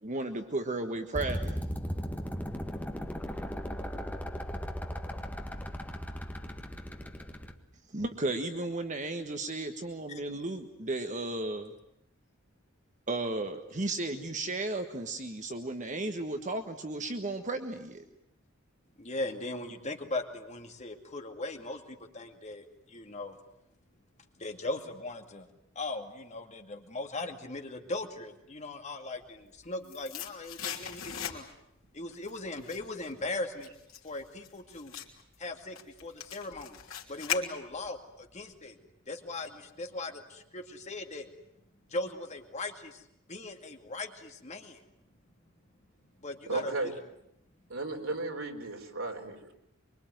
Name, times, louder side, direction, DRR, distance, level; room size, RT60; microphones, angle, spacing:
voice 1, 0.0-1.5 7.9-11.7 13.1-18.0, right 2 dB, 35° right, 7 dB, 1.5 m, -34 dB
sound 1, 1.1-7.5, equal, 10° left, 1.6 m, -37 dB
voice 2, 19.0-23.4 24.4-25.5 25.8-31.5 31.9-33.7 34.0-34.9 35.4-36.8 37.1-38.8 39.1-41.3 41.9-43.0 43.3-44.8 46.2-46.9, left 2 dB, 35° left, 5 dB, 2.4 m, -39 dB
sound 2, 29.3-31.8 32.1-38.0 38.3-38.4, left 8 dB, 85° left, 3.4 m, -40 dB
voice 3, 46.5-46.9 47.7-49.4, right 2 dB, 85° right, 3 dB, 4.2 m, -34 dB
24.5 x 24.0 x 9.3 m, 0.80 s
head